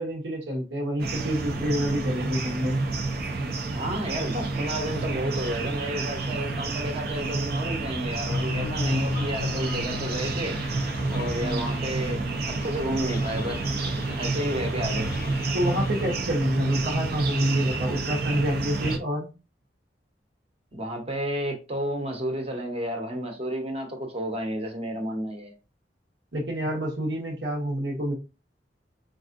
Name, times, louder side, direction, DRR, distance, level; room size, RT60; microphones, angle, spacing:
voice 1, 0.0-2.8 15.5-19.3 26.3-28.1, equal, 75° right, 1.1 m, -28 dB
sound 1, 1.0-19.0, right 3 dB, 60° right, 0.7 m, -29 dB
voice 2, 3.7-10.6 11.1-13.7 14.2-15.1 20.7-25.5, right 1 dB, 35° right, 1.0 m, -31 dB
sound 2, 8.3-16.2, left 3 dB, 55° left, 0.4 m, -35 dB
4.7 x 2.5 x 2.5 m
head